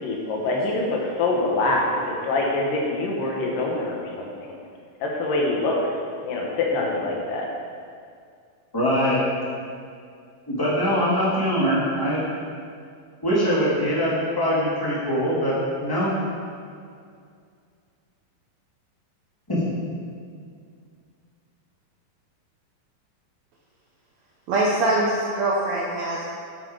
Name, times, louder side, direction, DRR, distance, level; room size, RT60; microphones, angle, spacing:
voice 1, 0.0-4.5 5.0-5.8 6.2-7.5, left 2 dB, 75° left, -1 dB, 2.8 m, -25 dB
voice 2, 8.7-9.3 10.5-12.3 13.2-16.1 19.5-19.6, equal, 10° left, -8 dB, 1.6 m, -22 dB
voice 3, 24.5-26.3, right 2 dB, 70° right, -3 dB, 1.8 m, -23 dB
8.5 x 7.8 x 5.0 m, 2.2 s
omnidirectional pair, 4.1 m